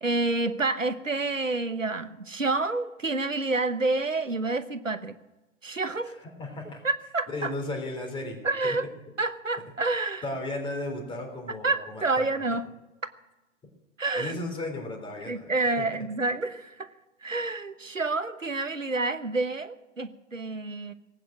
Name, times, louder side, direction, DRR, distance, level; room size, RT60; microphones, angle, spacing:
voice 1, 0.0-5.1 5.6-6.2 6.8-7.5 8.4-8.9 9.2-10.2 11.6-12.7 14.0-14.3 15.3-16.9 17.2-20.9, right 3 dB, 90° right, 12 dB, 1.1 m, -28 dB
voice 2, 6.4-6.8 7.3-8.8 10.2-12.3 14.1-15.9, left 2 dB, 15° left, 3 dB, 3.5 m, -35 dB
18.5 x 9.0 x 7.6 m, 1.1 s
figure-of-eight pair, 115°, 38 cm